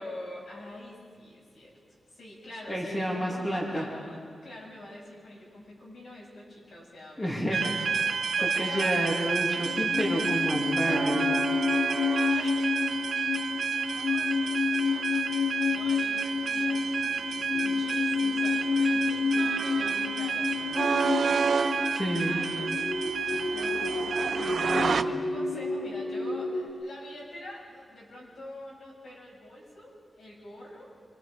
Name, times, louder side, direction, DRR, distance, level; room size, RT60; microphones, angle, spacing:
voice 1, 0.0-7.7 8.4-9.2 12.1-12.7 13.8-21.9 22.2-22.8 23.4-23.9 24.6-30.8, left 1 dB, 75° left, -3 dB, 7.2 m, -45 dB
voice 2, 2.7-3.9 7.2-7.7 8.6-11.3 21.9-22.4 23.2-23.4 24.4-25.0, equal, 15° left, -3 dB, 2.7 m, -30 dB
sound 1, 7.5-25.0, right 5 dB, 65° right, 0.7 m, -29 dB
sound 2, 9.6-26.7, left 4 dB, 90° left, 3.2 m, -30 dB
26.5 x 24.5 x 5.0 m, 2.1 s
wide cardioid pair, 160°, 0 cm